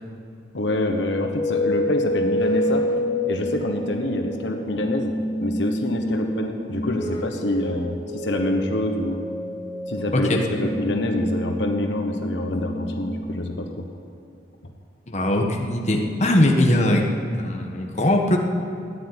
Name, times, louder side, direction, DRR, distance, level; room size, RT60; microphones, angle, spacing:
voice 1, 0.5-2.8 3.3-5.1 5.4-9.2 9.9-13.7, left 1 dB, 75° left, 3 dB, 1.2 m, -26 dB
sound 1, 1.4-13.4, equal, 20° left, 1.5 m, -28 dB
voice 2, 15.1-18.4, left 1 dB, 40° left, 1 dB, 1.5 m, -20 dB
13.5 x 9.6 x 9.7 m, 2.5 s
head